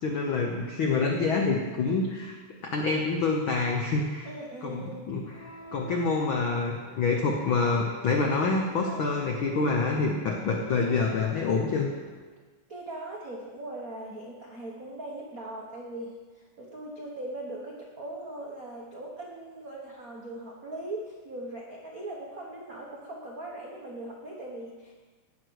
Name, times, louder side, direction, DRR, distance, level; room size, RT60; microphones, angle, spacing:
voice 1, 0.0-2.4 2.7-4.3 4.6-11.9, left 4 dB, 80° left, 0 dB, 1.1 m, -27 dB
voice 2, 4.2-5.0 8.8-9.1 12.7-24.9, right 1 dB, 70° right, -2 dB, 0.8 m, -40 dB
sound 1, 5.2-12.2, equal, 55° left, 3.7 m, -45 dB
17.0 x 6.6 x 4.7 m, 1.3 s
omnidirectional pair, 3.6 m